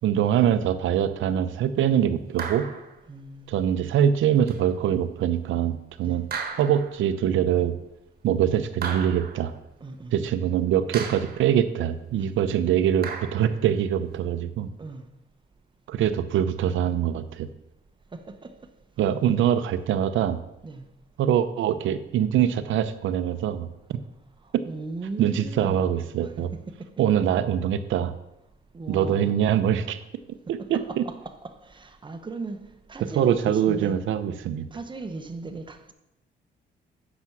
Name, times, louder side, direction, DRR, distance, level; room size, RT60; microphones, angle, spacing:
voice 1, 0.0-2.7 3.5-6.3 6.6-7.8 8.2-9.5 10.1-14.7 15.9-17.5 19.0-20.4 21.2-24.0 24.5-24.6 25.2-26.5 27.0-28.1 28.9-30.0 30.7-31.0 33.1-34.7, right 9 dB, 75° right, 0.7 m, -23 dB
sound 1, 2.4-3.0 4.5-4.6 6.3-7.0 8.8-9.5 10.9-11.5 13.0-13.6, right 5 dB, 50° right, 1.4 m, -35 dB
voice 2, 3.1-3.9 6.0-6.2 9.8-10.1 14.8-15.0 18.1-18.5 20.6-20.8 24.7-25.9 26.2-26.9 28.7-29.5 30.6-34.0 34.7-35.9, right 3 dB, 25° right, 1.0 m, -38 dB
8.3 x 6.1 x 6.0 m
cardioid pair, 90°, 20 cm